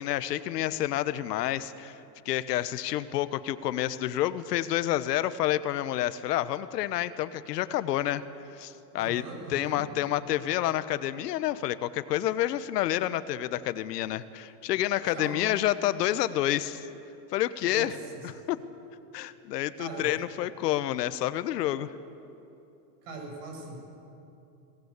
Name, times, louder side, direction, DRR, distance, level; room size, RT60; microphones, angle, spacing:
voice 1, 0.0-2.0 2.2-8.2 8.5-9.2 9.5-16.9 17.3-18.0 18.2-18.6 19.1-21.9, left 13 dB, 80° left, 14 dB, 1.1 m, -29 dB
voice 2, 9.0-9.8 15.1-15.5 17.6-17.9 19.8-20.1 23.0-24.0, right 2 dB, 50° right, 1 dB, 6.3 m, -40 dB
22.5 x 19.0 x 8.2 m, 2.8 s
supercardioid pair, 170°, 48 cm